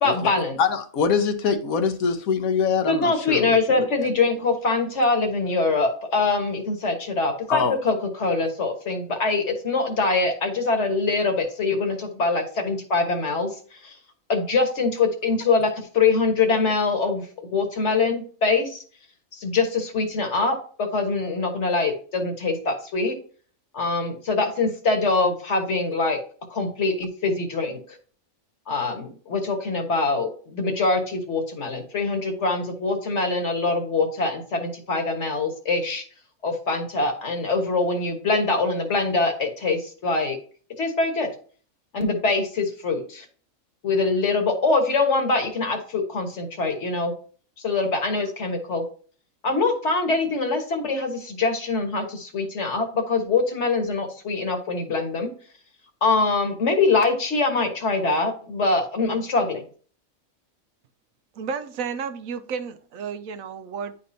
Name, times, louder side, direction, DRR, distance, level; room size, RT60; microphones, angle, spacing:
voice 1, 0.0-0.6 2.9-14.0 14.3-18.8 19.3-23.2 23.7-26.2 26.5-27.8 28.7-36.0 36.4-40.4 40.8-41.3 41.9-43.3 43.8-47.1 47.6-48.8 49.4-55.3 56.0-59.6, left 3 dB, 55° left, 1.6 m, -24 dB
voice 2, 0.6-3.6 7.5-7.7, left 6 dB, 75° left, 1.3 m, -23 dB
voice 3, 61.4-64.0, right 6 dB, 75° right, 1.0 m, -32 dB
10.0 x 4.2 x 2.7 m
omnidirectional pair, 1.5 m